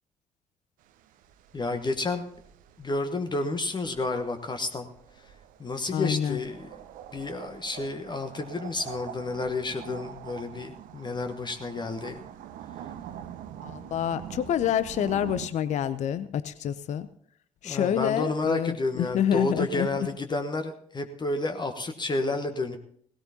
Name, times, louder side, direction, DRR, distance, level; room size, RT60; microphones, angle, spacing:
sound 1, 0.8-15.5, right 10 dB, 55° right, 0.8 m, -45 dB
voice 1, 1.5-2.3 2.8-4.9 5.2-5.3 5.6-6.8 7.1-12.2 17.6-22.8, left 2 dB, 25° left, 7 dB, 1.2 m, -30 dB
voice 2, 5.9-6.4 13.6-17.1 17.6-19.9, left 9 dB, 45° left, 14 dB, 0.6 m, -27 dB
18.0 x 17.0 x 2.9 m, 0.64 s
figure-of-eight pair, 45°, 16 cm